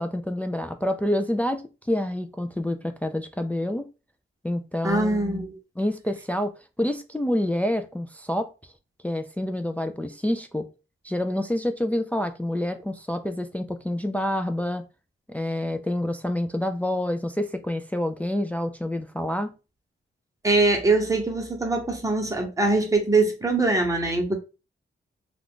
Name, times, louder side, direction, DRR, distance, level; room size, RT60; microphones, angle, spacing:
voice 1, 0.0-1.6 1.9-3.9 4.4-5.4 5.8-8.5 9.0-10.7 11.0-14.8 15.3-19.5, left 1 dB, 5° left, 0.3 m, -27 dB
voice 2, 4.8-5.6 20.4-24.3, right 2 dB, 15° right, 1.0 m, -23 dB
2.4 x 2.3 x 3.5 m
cardioid pair, 65°, 21 cm